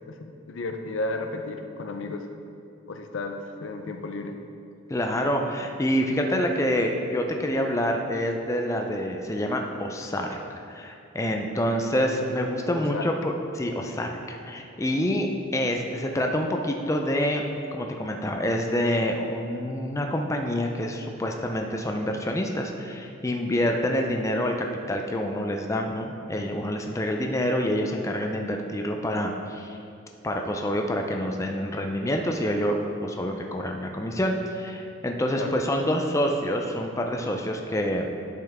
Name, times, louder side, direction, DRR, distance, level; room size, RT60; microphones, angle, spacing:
voice 1, 0.1-2.3 2.9-4.4 12.7-13.1 35.4-35.6, left 2 dB, 65° left, 5 dB, 0.6 m, -33 dB
voice 2, 4.9-17.4 17.7-24.5 24.9-29.8 30.2-38.1, equal, 15° left, 2 dB, 0.4 m, -27 dB
10.5 x 5.8 x 3.5 m, 2.6 s
head